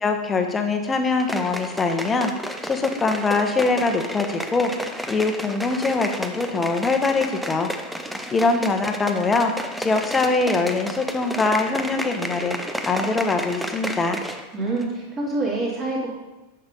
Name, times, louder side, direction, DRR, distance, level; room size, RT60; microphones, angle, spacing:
voice 1, 0.0-4.7 5.1-7.7 8.3-9.5 9.8-12.6 12.8-14.2, left 3 dB, 15° left, 5 dB, 1.1 m, -23 dB
sound 1, 1.2-14.5 14.8-14.9, equal, ahead, 0.6 m, -32 dB
voice 2, 14.5-16.1, right 2 dB, 25° right, -4 dB, 3.1 m, -26 dB
9.8 x 6.8 x 4.0 m, 1.1 s
figure-of-eight pair, 90°, 0 cm